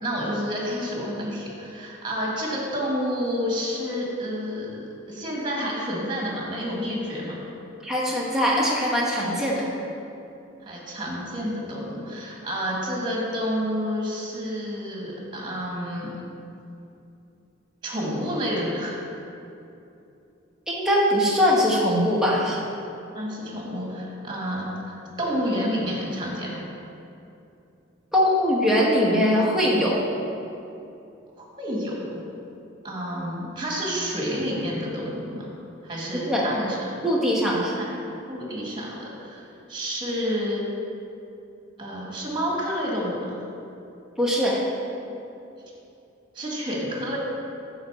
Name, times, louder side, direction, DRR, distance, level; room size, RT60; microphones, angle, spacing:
voice 1, 0.0-7.4 10.6-16.2 17.8-19.0 23.1-26.6 31.4-32.2 32.8-35.5 35.8-36.9 37.8-37.9 38.3-40.7 41.8-43.4 46.3-47.2, equal, 25° right, -3 dB, 1.7 m, -29 dB
voice 2, 7.8-9.7 20.7-22.6 28.1-30.0 36.1-36.5 37.0-37.8 44.2-44.6, equal, 5° right, -5 dB, 1.2 m, -21 dB
9.5 x 4.0 x 6.8 m, 2.8 s
head